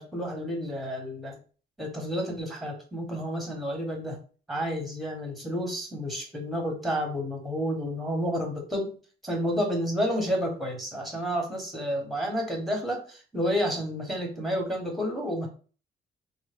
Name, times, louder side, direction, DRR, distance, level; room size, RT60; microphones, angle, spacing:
voice 1, 0.0-1.3 1.8-4.2 4.5-8.9 9.2-15.5, equal, ahead, 2 dB, 1.1 m, -30 dB
3.1 x 2.1 x 3.4 m, 0.38 s
cardioid pair, 90°, 20 cm